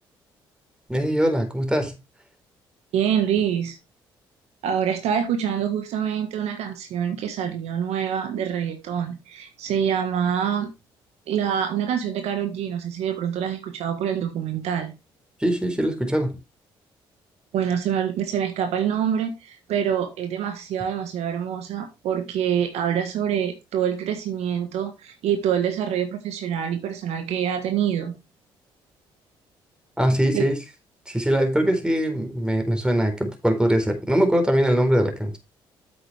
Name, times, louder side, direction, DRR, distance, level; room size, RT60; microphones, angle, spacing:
voice 1, 0.9-2.0 15.4-16.4 30.0-30.6 31.1-35.4, equal, 10° right, 4.1 m, -22 dB
voice 2, 2.9-3.8 4.6-10.7 11.3-14.9 17.5-28.1 30.3-30.4, right 8 dB, 70° right, 1.6 m, -26 dB
8.7 x 7.9 x 3.4 m
hypercardioid pair, 50°, 11 cm